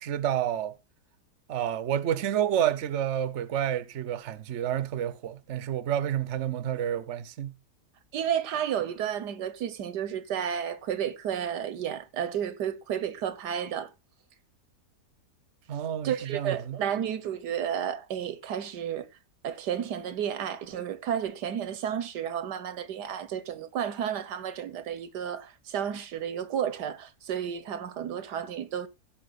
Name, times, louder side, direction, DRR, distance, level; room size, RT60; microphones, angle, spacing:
voice 1, 0.0-0.8 1.5-7.5 15.7-16.8, right 10 dB, 50° right, 1.1 m, -29 dB
voice 2, 8.1-13.9 16.0-19.1 19.4-28.9, right 9 dB, 85° right, 1.6 m, -32 dB
15.5 x 5.7 x 4.1 m
omnidirectional pair, 1.7 m